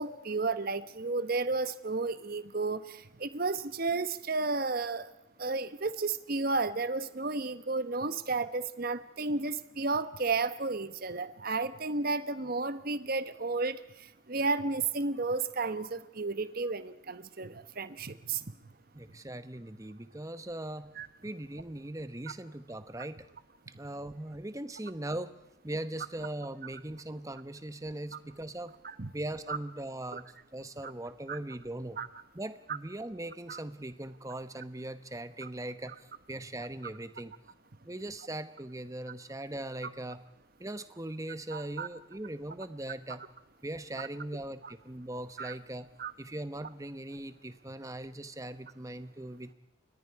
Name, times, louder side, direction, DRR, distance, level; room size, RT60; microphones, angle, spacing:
voice 1, 0.0-5.1 5.4-13.8 14.3-18.4 21.0-21.1 28.8-29.1 29.5-29.6 30.1-30.2 30.8-30.9 31.3-31.4 32.0-32.1 33.5-33.6 41.5-41.9 44.6-44.7 45.4-45.5 46.0-46.1, right 3 dB, 45° right, 13 dB, 1.0 m, -32 dB
voice 2, 18.9-20.9 21.2-23.2 23.7-25.4 25.6-28.7 29.1-32.0 32.3-37.3 37.8-40.2 40.6-43.2 43.6-45.9 46.2-49.5, right 1 dB, 15° right, 12 dB, 0.9 m, -40 dB
29.0 x 23.5 x 4.7 m, 0.92 s
head